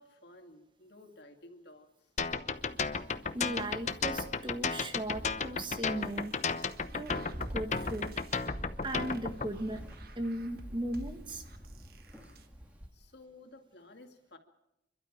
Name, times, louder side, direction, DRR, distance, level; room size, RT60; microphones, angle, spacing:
voice 1, 0.0-2.1 12.9-14.4, left 2 dB, 65° left, 5 dB, 2.3 m, -54 dB
sound 1, 2.2-9.5, left 5 dB, 40° left, 0.8 m, -33 dB
sound 2, 2.5-12.9, equal, 10° right, 2.1 m, -48 dB
voice 2, 3.3-6.4 6.9-7.2 7.5-8.1 8.8-11.4, right 1 dB, 25° right, 7 dB, 1.5 m, -37 dB
sound 3, 6.0-12.5, right 1 dB, 50° right, 1.3 m, -50 dB
28.0 x 12.5 x 8.7 m, 0.88 s
head